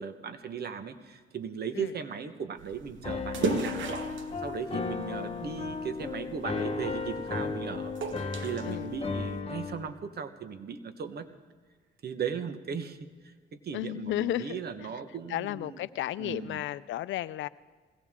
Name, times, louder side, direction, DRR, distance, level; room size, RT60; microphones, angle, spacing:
voice 1, 0.0-3.8 4.4-7.9 8.4-11.3 12.0-13.0 13.2-15.8 16.2-16.6, right 6 dB, 55° right, 10 dB, 1.2 m, -37 dB
sound 1, 2.6-9.4, right 4 dB, 70° right, 1.3 m, -38 dB
Piano, 3.0-9.9, left 4 dB, 30° left, 1.2 m, -35 dB
voice 2, 13.7-14.6 15.3-17.5, left 14 dB, 75° left, 17 dB, 0.5 m, -33 dB
21.0 x 17.0 x 3.7 m, 1.5 s
cardioid pair, 90°, 20 cm